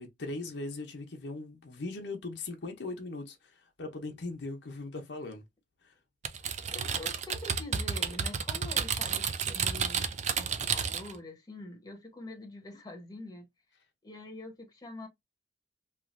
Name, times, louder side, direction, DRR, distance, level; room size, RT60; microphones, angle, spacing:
voice 1, 0.0-3.4 3.8-5.4 5.8-5.9, left 2 dB, 80° left, 0.7 m, -39 dB
Typing, 6.2-11.2, right 6 dB, 40° right, 0.4 m, -31 dB
voice 2, 6.7-13.4 14.0-15.1, left 2 dB, 20° left, 0.9 m, -45 dB
3.1 x 2.4 x 2.5 m
head